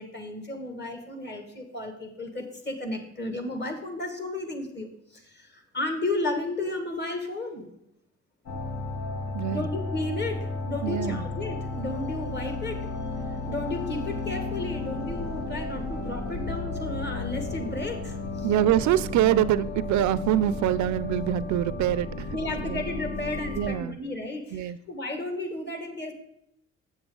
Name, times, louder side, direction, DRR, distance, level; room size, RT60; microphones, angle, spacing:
voice 1, 0.0-7.7 9.5-12.8 13.5-18.5 22.3-26.1, left 2 dB, 35° left, 5 dB, 1.8 m, -33 dB
sound 1, 8.5-23.7, left 3 dB, 70° left, 1.3 m, -33 dB
voice 2, 9.3-9.7 10.8-11.2 18.4-22.4 22.6-22.8 23.6-24.0 24.5-24.8, right 12 dB, 70° right, 16 dB, 0.4 m, -25 dB
7.7 x 7.0 x 3.8 m, 0.79 s
cardioid pair, 90°, 30 cm